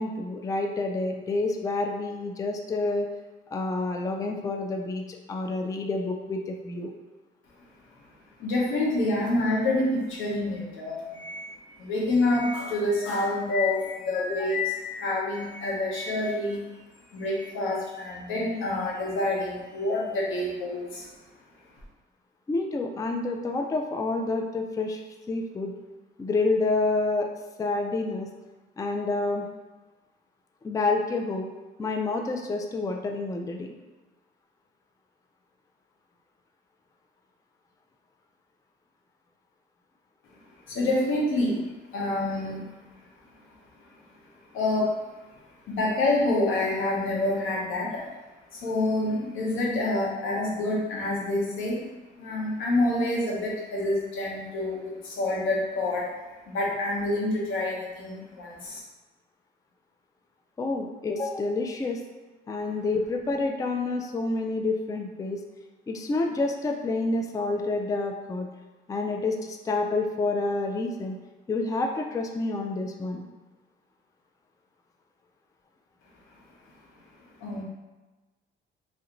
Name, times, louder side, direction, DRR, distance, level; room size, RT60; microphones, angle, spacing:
voice 1, 0.0-3.1 3.5-6.9 14.3-14.5 22.5-25.0 25.3-25.7 26.2-27.3 27.6-28.3 28.8-29.5 30.6-31.5 31.8-33.7 60.6-62.0 62.5-65.4 65.9-68.5 68.9-71.2 71.5-73.3, left 3 dB, 15° left, 3 dB, 0.3 m, -28 dB
voice 2, 8.4-16.8 17.1-21.1 40.7-42.7 44.5-45.1 45.7-48.1 48.5-51.9 52.2-56.2 56.5-58.8 77.4-77.6, left 2 dB, 85° left, -4 dB, 0.9 m, -27 dB
3.2 x 2.5 x 2.9 m, 1.2 s
cardioid pair, 90°, 20 cm